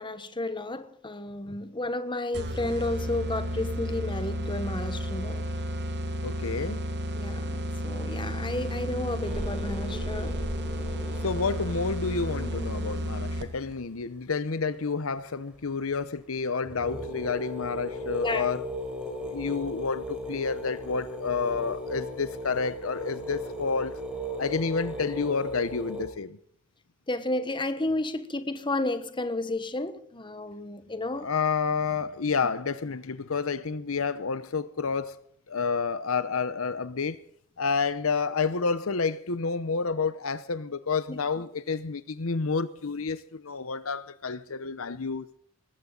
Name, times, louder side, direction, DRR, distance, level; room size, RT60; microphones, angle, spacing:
voice 1, 0.0-5.5 7.2-10.4 18.2-18.5 27.1-31.3 41.1-41.2, left 2 dB, 25° left, 1.2 m, -32 dB
sound 1, 2.3-13.7, equal, 55° right, 1.8 m, -32 dB
voice 2, 6.2-6.8 11.2-18.6 19.2-24.0 24.4-26.4 31.2-35.1 35.5-37.2 37.6-45.3, left 4 dB, 70° left, 0.8 m, -29 dB
sound 2, 9.2-13.2 15.9-16.0 16.4-16.5 16.6-26.1, left 1 dB, 5° right, 4.2 m, -37 dB
19.5 x 15.5 x 3.9 m
head